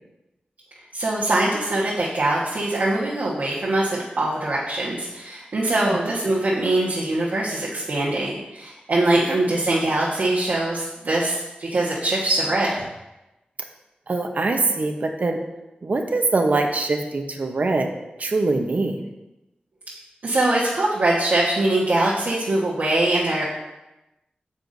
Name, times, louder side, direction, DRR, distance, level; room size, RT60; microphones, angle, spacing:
voice 1, 0.9-12.8 20.2-23.4, right 2 dB, 80° right, -8 dB, 1.5 m, -22 dB
voice 2, 5.7-6.1 9.3-9.6 14.1-15.4 15.8-17.9 18.2-19.0, right 3 dB, 55° right, 4 dB, 0.9 m, -23 dB
9.2 x 7.1 x 2.7 m, 0.98 s
wide cardioid pair, 95°, 3 cm